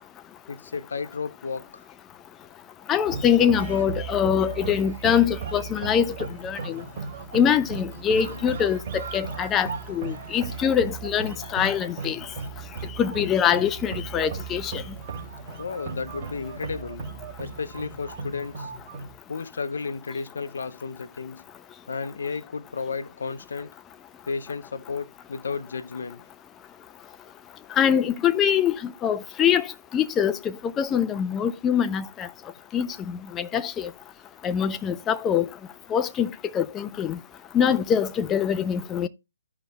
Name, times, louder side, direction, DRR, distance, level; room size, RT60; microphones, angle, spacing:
voice 1, 0.5-1.8 8.1-8.6 15.6-17.1 17.4-18.7 19.3-21.4 21.9-23.7 24.3-26.2, left 5 dB, 65° left, 0.7 m, -33 dB
voice 2, 2.9-6.1 6.4-6.8 7.3-12.2 13.0-14.8 27.8-29.7 29.9-32.3 32.7-33.9 34.4-35.5 35.9-37.2 37.5-39.1, left 8 dB, 15° left, 0.4 m, -24 dB
sound 1, 3.0-19.2, right 5 dB, 30° right, 2.4 m, -36 dB
15.0 x 5.2 x 2.2 m
hypercardioid pair, 150°, 0 cm